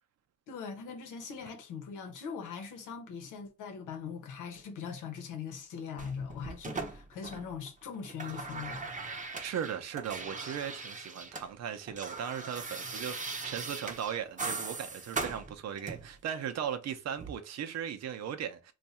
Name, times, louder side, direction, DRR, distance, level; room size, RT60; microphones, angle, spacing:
voice 1, 0.5-8.8, left 6 dB, 85° left, 0.9 m, -41 dB
sound 1, 6.0-7.7 7.9-11.5 11.7-16.2 17.2-17.3, right 3 dB, 25° right, 0.7 m, -40 dB
voice 2, 9.4-18.7, right 8 dB, 60° right, 0.7 m, -37 dB
2.6 x 2.4 x 4.1 m
cardioid pair, 90°, 30 cm